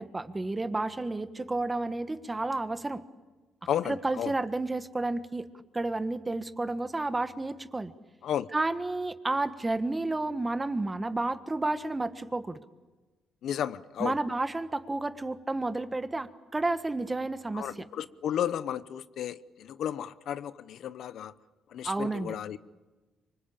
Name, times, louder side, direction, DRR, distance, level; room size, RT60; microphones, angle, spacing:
voice 1, 0.0-3.0 3.8-5.5 5.7-7.9 8.5-12.6 14.0-17.7 21.8-22.3, right 2 dB, 20° right, 10 dB, 1.5 m, -31 dB
voice 2, 3.7-4.3 8.2-8.5 13.4-14.1 17.5-21.3 21.7-22.6, left 10 dB, 70° left, 15 dB, 0.8 m, -33 dB
26.0 x 24.0 x 8.7 m, 1.2 s
cardioid pair, 90°, 0 cm